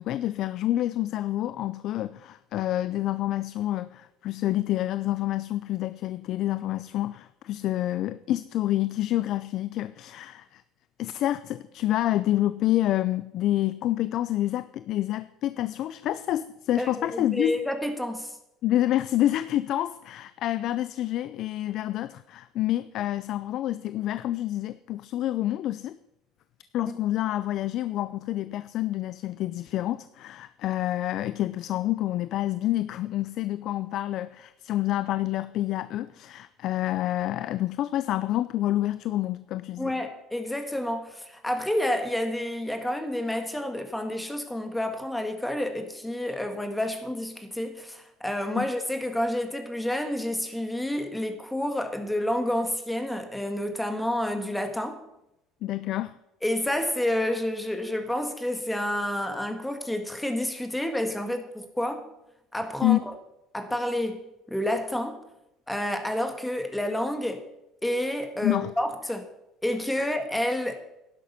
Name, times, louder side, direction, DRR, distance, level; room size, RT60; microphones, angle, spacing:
voice 1, 0.0-10.6 11.0-17.6 18.6-26.0 26.7-39.9 48.6-48.7 55.6-56.2 62.8-63.0 68.4-68.7 70.0-70.1, left 14 dB, 55° left, 0.4 m, -28 dB
voice 2, 16.8-18.4 39.8-55.0 56.4-62.1 62.5-63.1 63.5-65.2 65.7-67.4 67.8-69.2 69.6-70.8, left 1 dB, 5° left, 1.7 m, -29 dB
11.0 x 11.0 x 5.8 m
cardioid pair, 130°, 0 cm